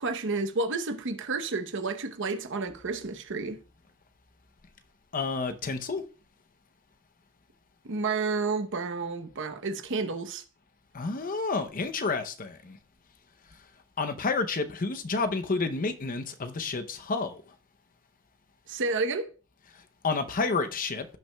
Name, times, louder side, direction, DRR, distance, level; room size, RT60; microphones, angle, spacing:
voice 1, 0.0-3.6 7.8-10.4 18.7-19.3, right 3 dB, 60° right, 0.9 m, -30 dB
voice 2, 5.1-6.0 10.9-12.8 14.0-17.4 20.0-21.1, left 4 dB, 40° left, 0.6 m, -30 dB
16.0 x 5.9 x 2.2 m
head